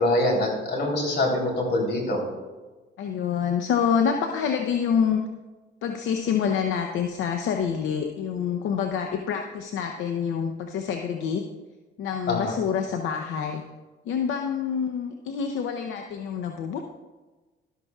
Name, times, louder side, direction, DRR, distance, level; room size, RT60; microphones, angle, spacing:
voice 1, 0.0-2.2 12.3-12.5, left 1 dB, 60° left, 0 dB, 3.4 m, -24 dB
voice 2, 3.0-5.2 5.8-11.4 12.0-13.6 14.1-16.8, left 7 dB, 85° left, 4 dB, 0.8 m, -27 dB
12.5 x 12.0 x 2.4 m, 1.2 s
cardioid pair, 90°, 20 cm